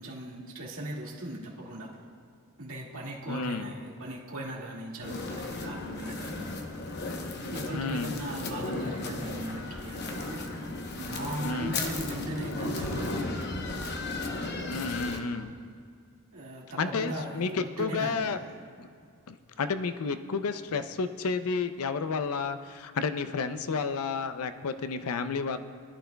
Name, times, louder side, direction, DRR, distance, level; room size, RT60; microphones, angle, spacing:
voice 1, 0.0-1.9 2.6-6.5 7.5-10.4 11.0-13.3 16.3-18.5, right 1 dB, 70° right, -4 dB, 2.0 m, -38 dB
voice 2, 3.3-3.7 7.7-8.1 11.4-11.8 14.7-15.5 16.8-18.4 18.8-18.9 19.3-25.6, left 4 dB, 80° left, 10 dB, 0.5 m, -31 dB
sound 1, 5.0-15.2, left 2 dB, 50° left, 0.8 m, -35 dB
20.0 x 11.5 x 2.3 m, 2.3 s
head